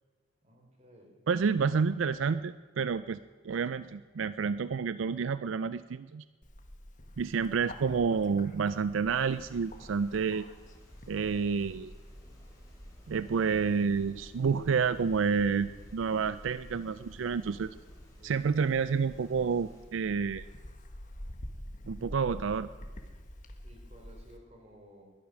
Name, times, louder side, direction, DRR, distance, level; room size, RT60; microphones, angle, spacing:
voice 1, 0.4-1.2 18.2-18.6 23.6-25.1, equal, 35° right, 1 dB, 3.6 m, -56 dB
voice 2, 1.3-6.2 7.2-10.4 11.1-11.9 13.1-17.7 18.2-20.4 21.9-22.7, right 5 dB, 85° right, 15 dB, 0.4 m, -29 dB
Bird, 6.4-24.4, equal, 40° left, 1.6 m, -48 dB
sound 1, 9.1-19.9, equal, 15° left, 4.1 m, -55 dB
21.0 x 10.5 x 6.3 m, 1.5 s
head